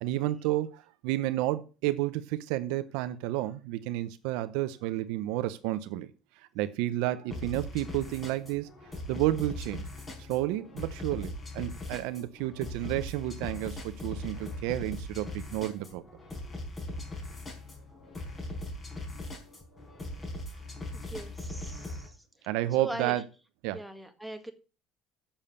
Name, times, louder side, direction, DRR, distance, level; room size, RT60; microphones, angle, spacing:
voice 1, 0.0-6.1 6.4-8.7 9.1-9.8 10.2-16.0 22.5-23.2 23.6-23.9, right 15 dB, 80° right, 0.7 m, -31 dB
sound 1, 7.3-22.1, left 1 dB, 25° left, 4.5 m, -40 dB
voice 2, 20.9-22.5 22.8-23.2 23.7-24.5, right 2 dB, ahead, 1.8 m, -40 dB
7.2 x 7.2 x 6.6 m
supercardioid pair, 105°, 0 cm